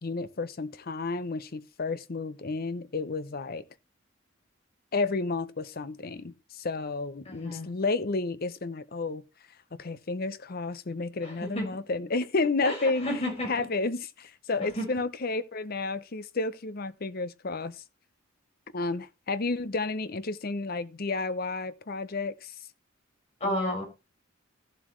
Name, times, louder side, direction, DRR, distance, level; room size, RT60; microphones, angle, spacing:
voice 1, 0.0-3.6 4.9-9.2 9.7-13.1 13.5-17.8 18.7-22.6 23.4-23.8, left 3 dB, 50° left, 0.7 m, -31 dB
voice 2, 7.3-7.7 11.2-11.7 12.6-13.7 14.7-14.9 23.4-23.8, left 1 dB, 30° left, 5.6 m, -32 dB
14.5 x 7.5 x 3.2 m
head